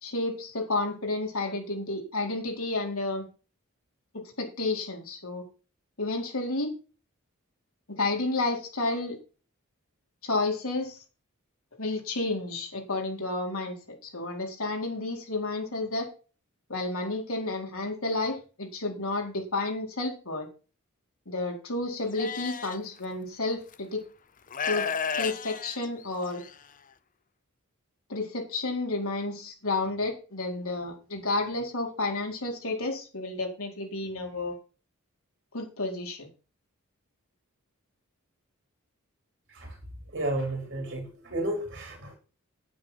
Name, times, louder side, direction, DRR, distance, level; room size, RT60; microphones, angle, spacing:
voice 1, 0.0-3.2 4.1-5.4 6.0-6.7 7.9-9.2 10.2-11.0 11.8-13.7 14.0-16.1 16.7-20.5 21.3-24.0 24.6-24.9 25.2-26.4 28.1-34.5 35.5-36.3, left 2 dB, 70° left, 2 dB, 4.3 m, -31 dB
Livestock farm animals working animals, 22.2-22.8 23.7-23.8 24.5-26.5, left 6 dB, 40° left, 0.8 m, -32 dB
voice 2, 40.1-42.1, right 1 dB, 55° right, 3 dB, 3.2 m, -32 dB
9.5 x 9.2 x 5.9 m, 0.35 s
head